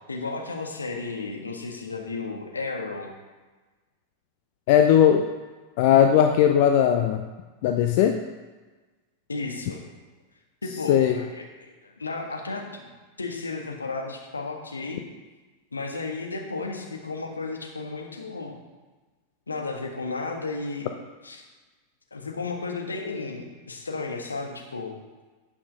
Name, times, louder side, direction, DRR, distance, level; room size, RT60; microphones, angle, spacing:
voice 1, 0.1-3.1 9.3-9.8 10.6-12.9 13.2-15.0 15.7-18.6 19.5-21.0 21.2-21.4 22.1-24.9, left 3 dB, 75° left, 2 dB, 1.4 m, -33 dB
voice 2, 4.7-5.3 5.8-7.3 7.6-8.2 10.9-11.2, left 9 dB, 50° left, 6 dB, 0.5 m, -18 dB
8.6 x 5.9 x 5.4 m, 1.3 s
figure-of-eight pair, 90°, 0 cm